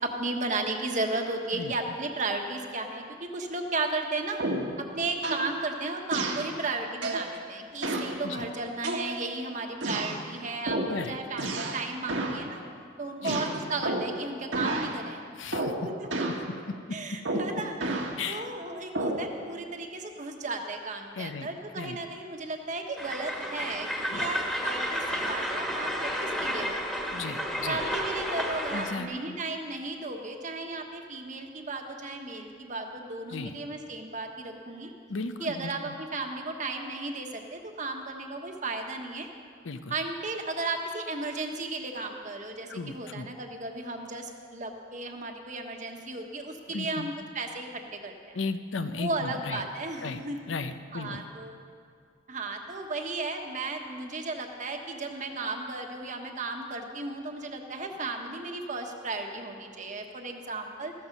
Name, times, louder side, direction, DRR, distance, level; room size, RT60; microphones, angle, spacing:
voice 1, 0.0-4.4 4.8-12.6 13.0-15.2 15.8-16.4 16.9-18.0 18.3-26.9 27.6-34.9 35.4-39.3 39.9-48.4 49.0-50.5 50.9-51.5 52.3-60.9, right 2 dB, 40° right, 3 dB, 1.3 m, -34 dB
sound 1, 4.4-4.8 5.2-5.5 6.1-6.5 7.0-7.3 7.8-8.2 8.8-9.4 9.8-10.2 10.7-11.0 11.4-11.8 12.1-12.4 13.2-14.2 14.5-14.9 15.5-15.8 16.1-16.4 17.2-18.1 18.9-19.3, right 2 dB, 75° right, 1.6 m, -30 dB
voice 2, 10.9-11.5 13.2-13.4 15.4-15.7 16.7-17.0 17.3-17.4 18.2-18.5 21.2-21.5 21.8-22.0 24.1-24.3 27.1-27.8 28.7-29.4 33.3-33.6 35.1-35.9 39.6-39.9 42.7-43.3 46.7-47.1 48.3-49.6 50.0-50.2 50.5-51.2, left 4 dB, 80° left, 9 dB, 0.7 m, -35 dB
Train, 23.0-29.0, equal, 5° left, 1.5 m, -31 dB
14.5 x 13.0 x 5.4 m, 2.1 s
head